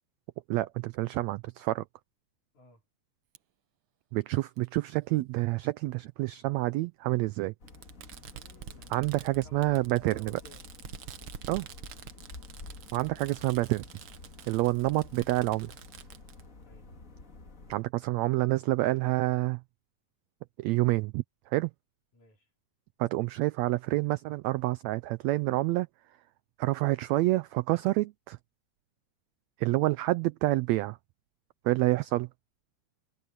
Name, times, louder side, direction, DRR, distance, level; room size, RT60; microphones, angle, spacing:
voice 1, 0.5-1.8 4.1-7.5 8.9-10.3 11.5-11.7 12.9-13.8 14.5-15.7 17.7-19.6 20.6-21.2 21.5-21.7 23.0-25.9 26.6-28.4 29.6-31.0 31.6-32.3, right 19 dB, 90° right, 1.5 m, -28 dB
Fireworks, 3.3-3.4 4.6-4.7 5.9-6.0 7.7-16.4, right 9 dB, 65° right, 1.2 m, -47 dB
sound 1, 7.6-17.8, left 3 dB, 30° left, 2.0 m, -50 dB
voice 2, 8.3-10.8 11.5-12.0 16.6-16.9 22.1-22.5, left 2 dB, 65° left, 6.3 m, -58 dB
omnidirectional pair, 3.6 m